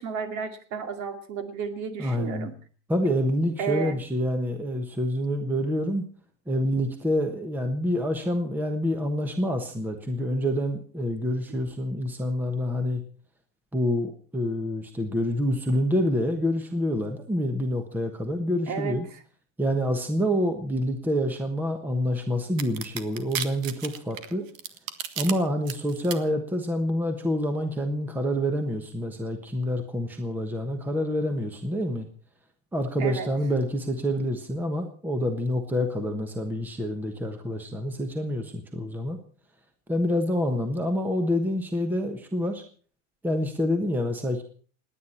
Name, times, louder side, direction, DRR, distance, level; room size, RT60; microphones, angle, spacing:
voice 1, 0.0-2.5 3.6-4.0 11.5-11.6 18.7-19.2 33.0-33.3, right 6 dB, 45° right, 7 dB, 2.4 m, -32 dB
voice 2, 2.0-2.5 2.9-6.1 6.5-13.0 13.7-19.1 19.6-24.5 25.2-32.1 32.7-39.2 39.9-42.6 43.2-44.4, equal, 5° right, 6 dB, 1.2 m, -27 dB
sound 1, 22.6-25.3 25.7-26.2, right 9 dB, 90° right, 1.7 m, -32 dB
28.5 x 9.7 x 4.3 m, 0.43 s
supercardioid pair, 150°, 39 cm